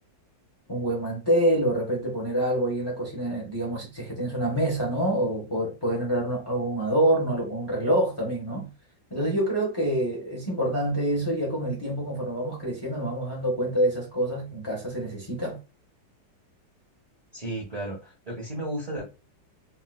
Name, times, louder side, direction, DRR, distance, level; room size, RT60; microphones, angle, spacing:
voice 1, 0.7-8.7 9.1-15.6, right 1 dB, 35° left, 0.4 m, -26 dB
voice 2, 17.3-19.0, right 1 dB, 60° right, 0.4 m, -33 dB
3.6 x 2.2 x 2.3 m
omnidirectional pair, 1.9 m